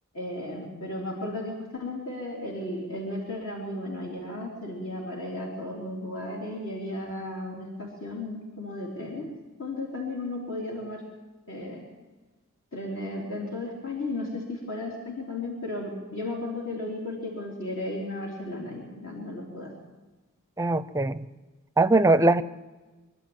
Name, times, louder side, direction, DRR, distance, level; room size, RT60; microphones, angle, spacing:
voice 1, 0.1-9.3 9.6-11.0 11.5-11.8 12.7-19.7, left 2 dB, 65° left, -2 dB, 4.0 m, -34 dB
voice 2, 20.6-21.3 21.8-22.4, right 2 dB, 15° right, 13 dB, 0.6 m, -21 dB
25.0 x 12.0 x 9.1 m, 1.2 s
head